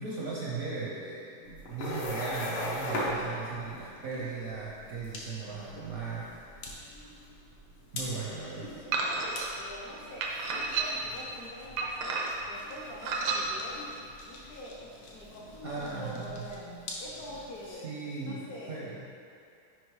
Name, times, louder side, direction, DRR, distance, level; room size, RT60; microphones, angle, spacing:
voice 1, 0.0-6.6 7.9-8.7 15.6-16.5 17.7-19.0, right 4 dB, 60° right, -6 dB, 0.9 m, -37 dB
sound 1, 1.4-17.7, left 1 dB, 80° left, 1.9 m, -41 dB
voice 2, 8.3-9.2 9.6-13.9 14.2-16.7 17.0-17.9 18.2-18.8, left 1 dB, 60° left, -5 dB, 1.0 m, -45 dB
sound 2, 8.9-9.5 10.2-11.1 11.8-12.5 13.0-13.4, right 4 dB, 80° right, 1.6 m, -31 dB
6.4 x 5.2 x 4.7 m, 2.5 s
omnidirectional pair, 2.4 m